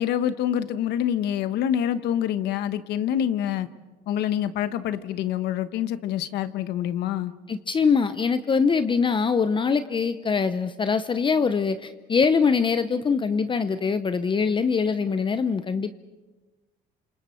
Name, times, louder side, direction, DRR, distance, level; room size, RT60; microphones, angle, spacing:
voice 1, 0.0-3.7 4.1-7.3, left 10 dB, 80° left, 12 dB, 1.1 m, -26 dB
voice 2, 7.5-15.9, left 5 dB, 30° left, 11 dB, 0.8 m, -23 dB
29.5 x 27.0 x 4.5 m, 1.2 s
cardioid pair, 110°, 17 cm